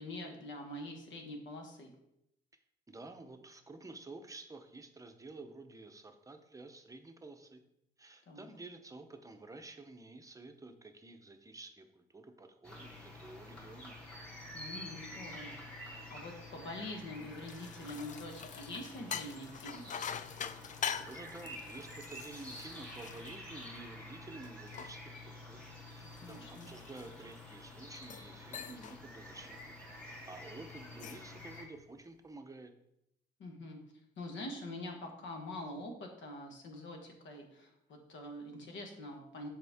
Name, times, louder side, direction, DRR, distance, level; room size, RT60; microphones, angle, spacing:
voice 1, 0.0-1.9 8.3-8.5 14.5-19.9 26.2-26.7 33.4-33.8 34.2-39.5, left 1 dB, 70° left, 3 dB, 1.3 m, -45 dB
voice 2, 2.9-7.6 8.0-14.0 20.4-25.6 25.9-29.6 30.0-32.7, right 2 dB, 15° right, 6 dB, 0.7 m, -51 dB
sound 1, 12.6-31.6, left 1 dB, 5° left, 2.1 m, -49 dB
sound 2, 17.2-24.0 24.4-27.5 28.0-28.3 28.5-29.0 29.4-29.6 30.8-31.3, left 8 dB, 40° left, 0.4 m, -44 dB
6.6 x 4.3 x 3.6 m, 0.81 s
cardioid pair, 90°, 20 cm